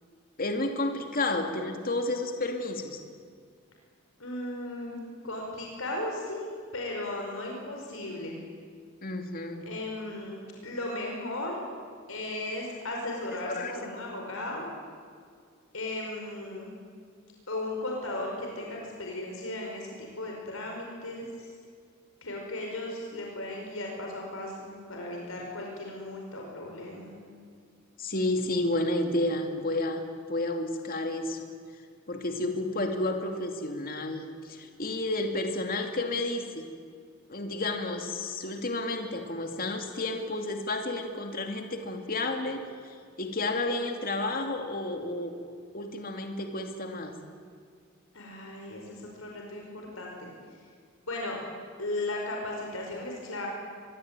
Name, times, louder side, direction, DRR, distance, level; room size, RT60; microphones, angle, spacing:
voice 1, 0.4-3.0 9.0-9.7 13.3-14.0 28.0-30.0 30.3-31.5 32.1-36.7 37.3-45.3 45.7-47.1, left 2 dB, 45° left, 4 dB, 2.6 m, -31 dB
voice 2, 4.2-8.4 9.7-11.6 12.1-14.7 15.7-16.8 17.5-21.5 22.2-27.2 48.1-50.3 51.1-51.4 51.8-53.5, left 2 dB, 75° left, 0 dB, 5.3 m, -36 dB
24.5 x 23.0 x 9.0 m, 2.1 s
head